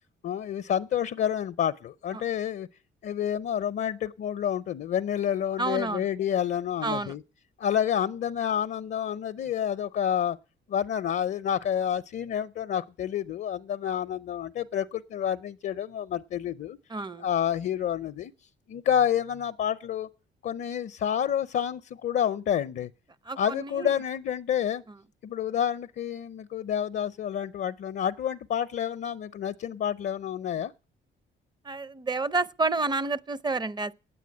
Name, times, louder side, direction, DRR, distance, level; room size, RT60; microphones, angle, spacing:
voice 1, 0.2-2.7 3.0-7.2 7.6-10.4 10.7-16.8 17.2-18.3 18.7-20.1 20.4-22.9 23.4-24.8 25.2-30.7, left 9 dB, 55° left, 0.6 m, -29 dB
voice 2, 5.6-6.1 6.8-7.1 16.9-17.3 23.3-23.9 31.6-33.9, right 3 dB, 20° right, 0.6 m, -29 dB
9.1 x 8.4 x 9.5 m
cardioid pair, 90°, 20 cm